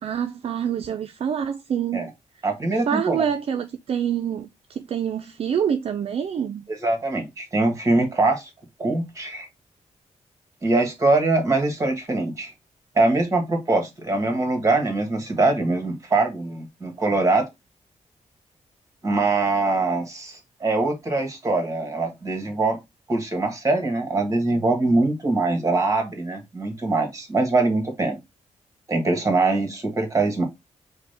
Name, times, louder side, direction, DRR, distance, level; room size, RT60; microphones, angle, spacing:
voice 1, 0.0-2.1 2.9-6.6, right 8 dB, 50° right, 0.4 m, -26 dB
voice 2, 2.4-3.2 6.7-8.5 8.8-9.5 10.6-12.5 12.9-17.5 19.0-22.8 23.1-28.2 28.9-30.4, right 2 dB, 25° right, 1.3 m, -23 dB
4.8 x 2.2 x 3.3 m
cardioid pair, 105°, 13 cm